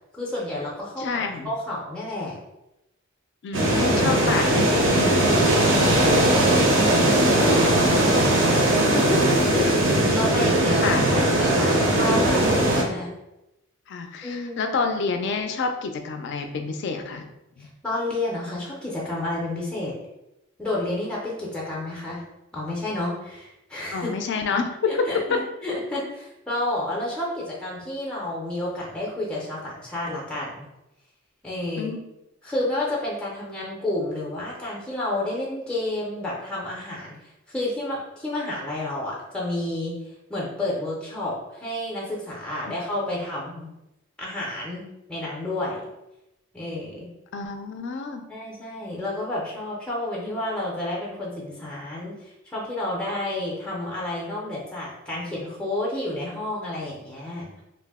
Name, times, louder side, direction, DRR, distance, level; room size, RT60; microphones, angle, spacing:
voice 1, 0.1-2.4 6.2-8.7 8.9-13.1 14.2-14.7 17.6-19.9 20.6-22.2 22.5-24.1 24.9-30.7 31.4-31.9 32.4-39.9 40.3-43.7 44.2-44.8 45.1-45.8 46.5-47.1 48.3-57.6, left 1 dB, 5° left, -4 dB, 0.5 m, -30 dB
voice 2, 1.0-1.5 3.4-5.3 9.6-10.2 10.8-11.0 13.9-17.3 17.6-17.7 23.9-25.0 25.3-25.4 31.8-32.0 42.7-42.8 47.3-48.2, left 4 dB, 60° left, 6 dB, 0.3 m, -28 dB
sound 1, 3.5-12.8, right 1 dB, 60° right, 0.6 m, -19 dB
2.6 x 2.0 x 3.4 m, 0.91 s
head